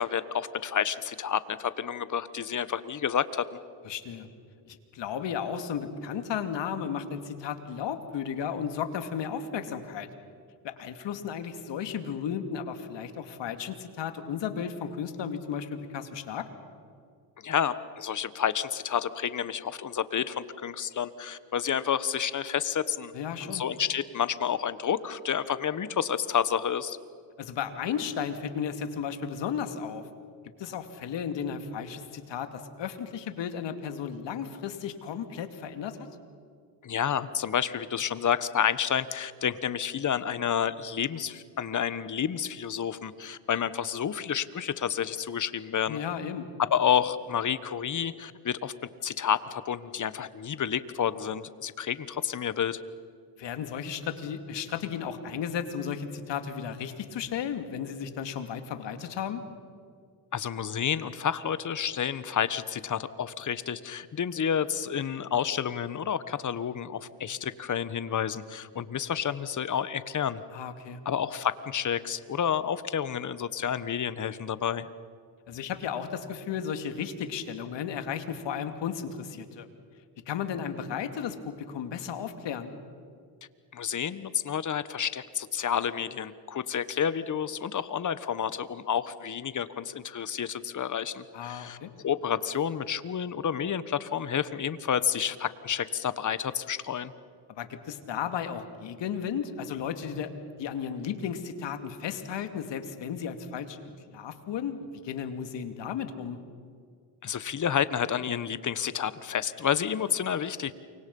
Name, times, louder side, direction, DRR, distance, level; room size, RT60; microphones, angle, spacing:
voice 1, 0.0-3.6 17.4-23.1 23.4-27.0 36.8-46.0 46.7-48.7 49.0-52.8 60.3-70.4 71.0-74.9 83.7-91.8 92.0-97.1 107.2-110.7, left 8 dB, 35° left, 15 dB, 1.4 m, -30 dB
voice 2, 3.8-4.3 4.6-10.1 10.6-16.5 23.1-23.6 27.4-30.0 30.6-36.0 45.9-46.5 53.4-59.4 70.5-71.0 75.5-79.7 80.3-82.7 91.3-91.9 97.5-100.3 100.6-106.4, left 7 dB, 60° left, 8 dB, 2.6 m, -34 dB
29.0 x 25.0 x 5.5 m, 2.2 s
supercardioid pair, 80°, 49 cm